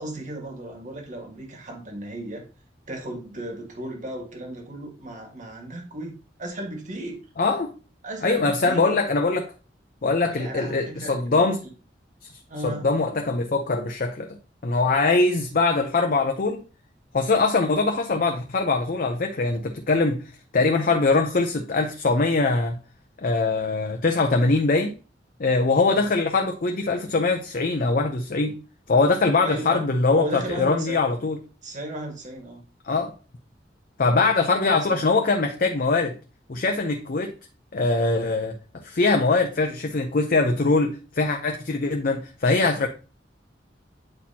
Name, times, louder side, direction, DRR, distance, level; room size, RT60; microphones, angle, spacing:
voice 1, 0.0-2.4 2.9-7.2 8.0-9.0 10.3-11.7 12.5-12.9 25.9-26.1 29.4-29.9 30.1-31.1 31.6-32.6 34.6-35.0, right 1 dB, 45° right, 1.6 m, -35 dB
voice 2, 7.4-7.7 8.2-9.5 10.0-11.6 12.6-14.3 14.6-16.6 17.1-20.2 20.5-22.8 23.2-24.9 25.4-28.5 28.9-31.4 32.8-33.1 34.0-36.1 36.5-37.3 37.7-42.9, left 3 dB, 50° left, 0.6 m, -22 dB
8.8 x 4.3 x 2.8 m
head